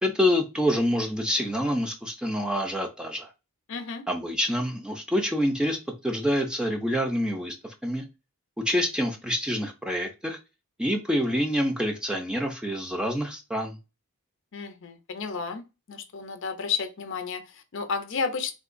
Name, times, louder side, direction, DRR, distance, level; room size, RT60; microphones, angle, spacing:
voice 1, 0.0-3.3 4.1-5.8 6.0-8.0 8.7-10.4 10.8-13.8, equal, 5° right, 0.4 m, -27 dB
voice 2, 3.7-4.1 14.5-18.5, left 5 dB, 55° left, 0.5 m, -32 dB
3.7 x 2.7 x 2.5 m
head